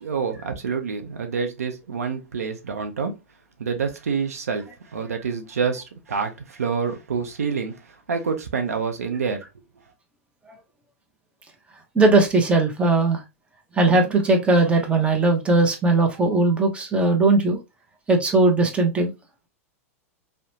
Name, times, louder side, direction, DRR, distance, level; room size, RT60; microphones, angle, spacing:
voice 1, 0.0-3.1 3.6-9.4, right 5 dB, 90° right, 0.6 m, -27 dB
voice 2, 11.9-13.2 13.7-17.6 18.1-19.1, right 2 dB, 15° right, 0.7 m, -19 dB
2.8 x 2.1 x 2.7 m
hypercardioid pair, 110°, 8 cm